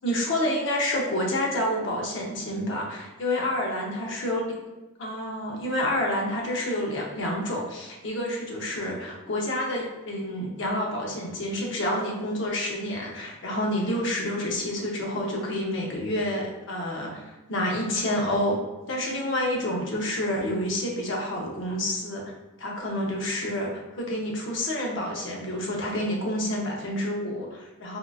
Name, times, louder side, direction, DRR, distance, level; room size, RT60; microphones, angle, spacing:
voice 1, 0.0-4.5 5.0-18.6 18.9-22.2 22.6-28.0, left 1 dB, 60° left, -1 dB, 0.6 m, -28 dB
3.6 x 2.4 x 2.3 m, 1.1 s
head